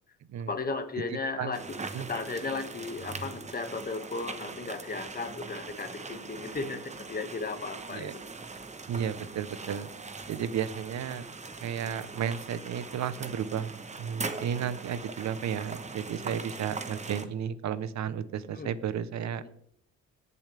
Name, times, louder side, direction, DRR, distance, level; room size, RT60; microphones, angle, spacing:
voice 1, 0.5-8.1 18.6-18.7 19.4-19.6, left 3 dB, 30° left, 7 dB, 1.7 m, -35 dB
voice 2, 1.1-1.5 1.9-2.1 7.9-8.1 8.9-9.9 10.3-11.3 11.6-13.7 14.0-19.4, right 8 dB, 65° right, 14 dB, 1.0 m, -33 dB
sound 1, 1.5-17.3, right 3 dB, 25° right, 1.1 m, -41 dB
18.0 x 7.0 x 3.4 m, 0.67 s
cardioid pair, 90°, 30 cm